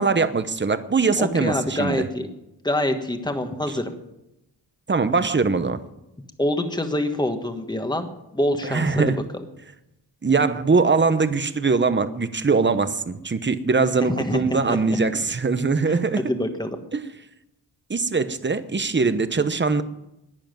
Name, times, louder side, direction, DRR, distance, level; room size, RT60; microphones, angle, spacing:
voice 1, 0.0-2.1 4.9-5.8 8.6-9.2 10.2-16.2 16.9-17.0 17.9-19.8, right 4 dB, 25° right, 11 dB, 0.9 m, -22 dB
voice 2, 1.2-2.3 2.6-3.9 6.4-9.2 14.1-15.0 15.8-16.0 16.3-16.7, left 1 dB, 10° left, 6 dB, 1.5 m, -26 dB
12.0 x 10.5 x 9.2 m, 0.89 s
wide cardioid pair, 115°, 41 cm